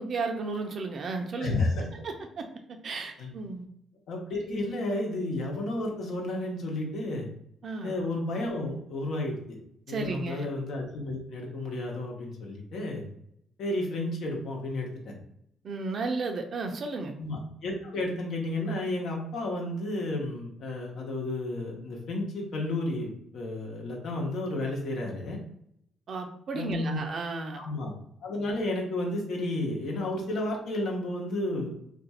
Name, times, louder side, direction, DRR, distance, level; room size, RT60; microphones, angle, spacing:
voice 1, 0.0-1.6 2.0-2.5 2.8-3.7 7.6-8.0 9.9-10.5 15.6-17.1 26.1-27.7, right 3 dB, 55° right, 5 dB, 0.5 m, -33 dB
voice 2, 1.4-1.9 3.2-3.3 4.1-7.3 7.8-9.6 9.9-13.0 13.6-14.9 17.2-25.4 26.5-27.0 27.5-27.9 28.2-31.7, left 2 dB, 70° left, 0 dB, 0.9 m, -32 dB
2.5 x 2.4 x 4.1 m, 0.72 s
cardioid pair, 90°, 0 cm